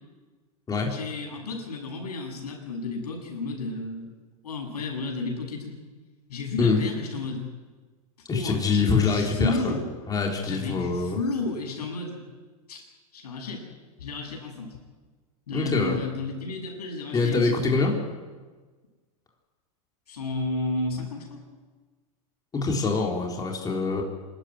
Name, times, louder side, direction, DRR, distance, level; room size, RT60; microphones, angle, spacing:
voice 1, 0.9-4.1 4.4-5.8 6.3-7.5 8.3-9.9 10.4-12.2 12.7-12.8 13.1-13.6 14.0-14.8 15.5-17.9 20.1-21.4, left 3 dB, 90° left, 1 dB, 7.5 m, -32 dB
voice 2, 8.3-9.7 10.1-11.2 15.5-16.0 17.1-17.9 22.5-24.0, left 4 dB, 20° left, 0 dB, 4.0 m, -24 dB
27.0 x 13.0 x 9.8 m, 1.4 s
hypercardioid pair, 115°, 19 cm